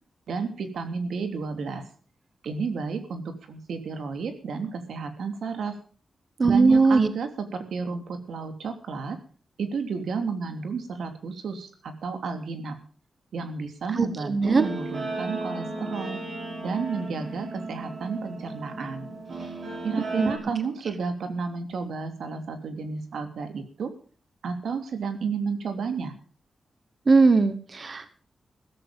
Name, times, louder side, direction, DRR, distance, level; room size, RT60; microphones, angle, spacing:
voice 1, 0.3-1.8 2.4-5.8 6.4-9.2 9.6-12.7 13.3-16.2 16.6-19.1 19.8-23.9 24.4-26.1, right 5 dB, 85° right, 7 dB, 3.1 m, -32 dB
voice 2, 6.4-7.1 14.0-14.6 20.2-20.3 27.1-28.1, right 4 dB, 35° right, 11 dB, 1.0 m, -20 dB
Guitar, 14.4-20.4, right 2 dB, 55° right, 7.5 m, -35 dB
16.0 x 14.5 x 5.3 m, 0.40 s
wide cardioid pair, 170°, 0 cm